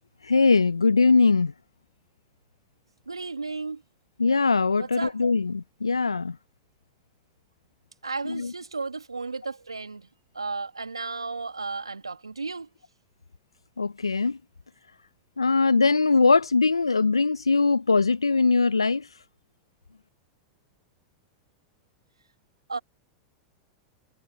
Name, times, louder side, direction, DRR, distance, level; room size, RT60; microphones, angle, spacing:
voice 1, 0.2-1.5 4.2-6.3 8.2-8.5 13.8-14.4 15.4-19.1, left 4 dB, 85° left, 1.0 m, -21 dB
voice 2, 3.1-3.8 4.8-5.2 8.0-10.1 10.3-12.7 22.7-22.8, right 4 dB, 90° right, 2.8 m, -34 dB
figure-of-eight pair, 90°, 3 cm